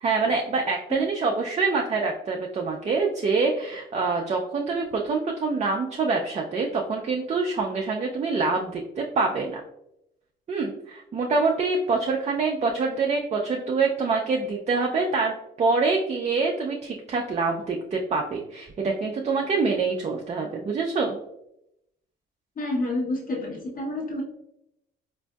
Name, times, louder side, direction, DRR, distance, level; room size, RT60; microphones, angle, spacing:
voice 1, 0.0-9.6 10.5-21.2, right 4 dB, 35° right, 0 dB, 0.4 m, -25 dB
voice 2, 22.6-24.2, left 1 dB, 45° left, -1 dB, 1.0 m, -29 dB
4.1 x 2.6 x 2.3 m, 0.79 s
cardioid pair, 90°, 20 cm